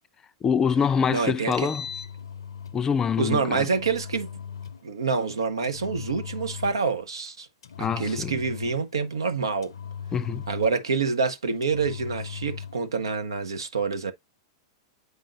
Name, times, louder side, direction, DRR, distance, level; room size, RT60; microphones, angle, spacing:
voice 1, 0.4-1.8 2.7-3.7 7.8-8.3 10.1-10.4, left 6 dB, 20° left, 0.4 m, -25 dB
voice 2, 1.1-1.7 3.2-4.3 4.8-7.5 7.8-9.7 10.5-14.1, right 5 dB, 80° right, 0.9 m, -27 dB
Engine, 1.3-2.8 3.6-4.8 5.6-6.9 7.6-8.9 9.6-11.0 11.6-12.8, left 7 dB, 80° left, 0.5 m, -38 dB
8.0 x 5.2 x 2.5 m
hypercardioid pair, 105°, 2 cm